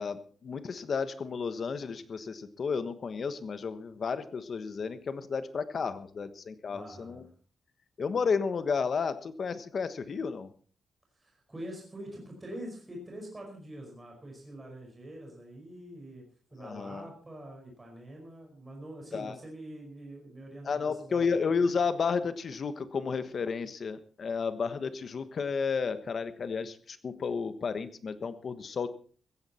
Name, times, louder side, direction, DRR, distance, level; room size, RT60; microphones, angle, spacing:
voice 1, 0.0-7.2 8.0-10.5 16.6-17.1 19.1-19.4 20.6-28.9, left 5 dB, 45° left, 12 dB, 1.2 m, -32 dB
voice 2, 6.7-7.2 11.2-16.2 16.5-21.4, right 1 dB, 15° right, 0 dB, 5.1 m, -45 dB
16.0 x 15.0 x 4.3 m, 0.42 s
wide cardioid pair, 165°, 0 cm